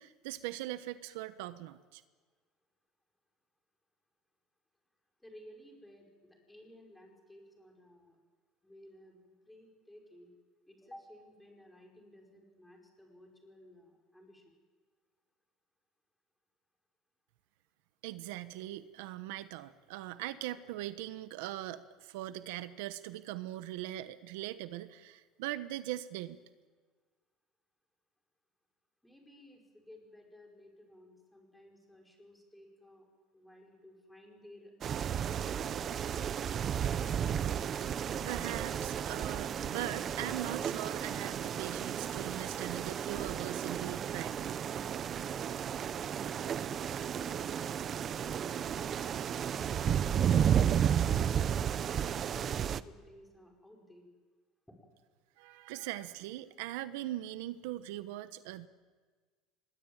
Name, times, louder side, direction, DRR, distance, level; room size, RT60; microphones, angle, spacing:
voice 1, 0.0-2.0 18.0-26.4 38.2-44.5 55.4-58.7, right 14 dB, 80° right, 12 dB, 1.1 m, -41 dB
voice 2, 5.2-8.2 8.6-10.3 10.7-14.6 29.0-33.1 33.3-35.2 45.7-46.4 46.7-49.1 49.4-49.8 50.1-54.1 54.7-54.8, left 1 dB, 5° left, 1 dB, 5.4 m, -56 dB
sound 1, 34.8-52.8, right 9 dB, 30° right, 0.7 m, -33 dB
25.0 x 22.0 x 9.1 m, 1.4 s
cardioid pair, 145°, 0 cm